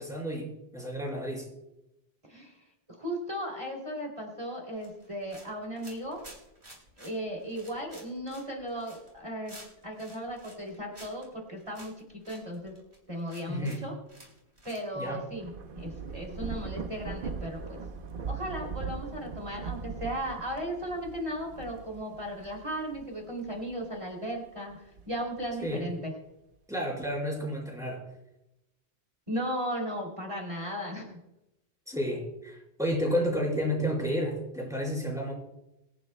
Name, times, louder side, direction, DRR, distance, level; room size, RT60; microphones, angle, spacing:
voice 1, 0.0-1.5 13.5-13.8 14.9-15.2 25.6-25.9 26.7-28.0 31.9-35.3, equal, 5° right, -3 dB, 4.6 m, -31 dB
voice 2, 2.9-6.2 7.0-9.6 9.8-12.7 13.1-13.9 14.6-17.8 18.3-26.1 29.3-31.1, equal, 30° right, 0 dB, 3.1 m, -36 dB
sound 1, 4.7-14.8, right 1 dB, 75° right, 4.1 m, -52 dB
Thunder / Rain, 15.1-24.0 24.5-25.9, right 5 dB, 55° right, 1.0 m, -40 dB
25.0 x 9.3 x 2.2 m, 0.90 s
omnidirectional pair, 1.1 m